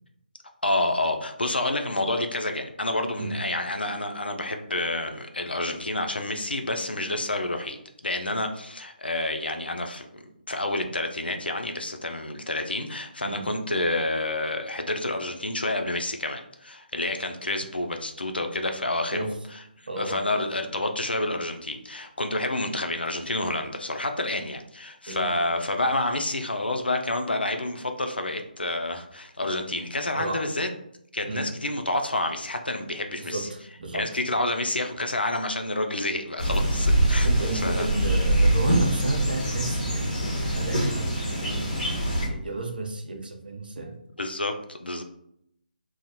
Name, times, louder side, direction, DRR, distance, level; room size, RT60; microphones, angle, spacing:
voice 1, 0.6-7.8 8.0-19.2 20.0-30.7 31.1-33.5 33.9-37.3 37.5-37.9 44.2-45.0, left 2 dB, 85° left, 5 dB, 0.4 m, -29 dB
voice 2, 19.9-20.2 25.1-25.4 30.2-30.5 31.2-31.4 33.1-34.1 37.2-41.7 42.3-43.9, right 2 dB, 65° right, 2 dB, 0.6 m, -32 dB
sound 1, 36.4-42.3, right 1 dB, 45° left, 1.0 m, -24 dB
2.4 x 2.0 x 2.7 m, 0.75 s
figure-of-eight pair, 145°, 5 cm